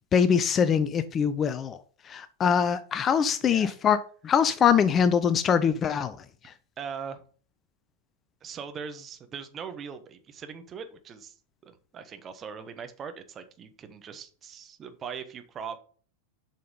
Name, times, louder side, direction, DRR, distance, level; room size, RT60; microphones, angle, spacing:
voice 1, 0.1-1.8 2.1-4.0 4.2-6.2, left 7 dB, 25° left, 0.6 m, -23 dB
voice 2, 3.4-3.7 6.8-7.2 8.4-11.4 11.6-15.8, right 6 dB, 25° right, 1.2 m, -40 dB
7.4 x 5.7 x 5.3 m
figure-of-eight pair, 90°, 0 cm